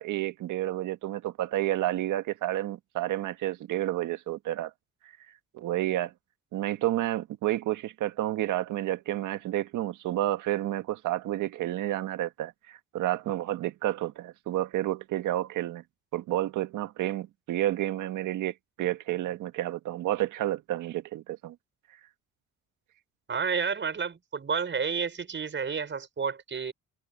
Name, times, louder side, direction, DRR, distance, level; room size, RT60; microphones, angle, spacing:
voice 1, 0.0-4.7 5.5-6.1 6.5-15.8 16.1-21.6, right 14 dB, 85° right, 1.8 m, -30 dB
voice 2, 23.3-26.7, right 6 dB, 40° right, 5.2 m, -30 dB
cardioid pair, 90°, 30 cm